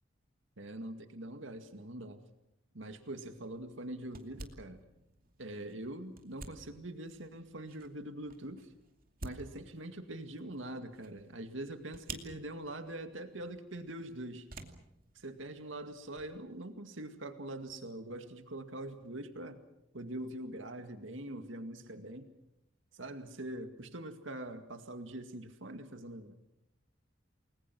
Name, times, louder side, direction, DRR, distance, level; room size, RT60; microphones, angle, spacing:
voice 1, 0.6-2.2 2.7-4.8 5.4-8.7 9.2-14.5 15.2-19.6 19.9-22.3 22.9-26.3, right 1 dB, 80° right, 7 dB, 2.1 m, -43 dB
sound 1, 2.8-16.4, right 3 dB, 50° right, 2.6 m, -53 dB
29.5 x 21.5 x 6.2 m, 0.84 s
head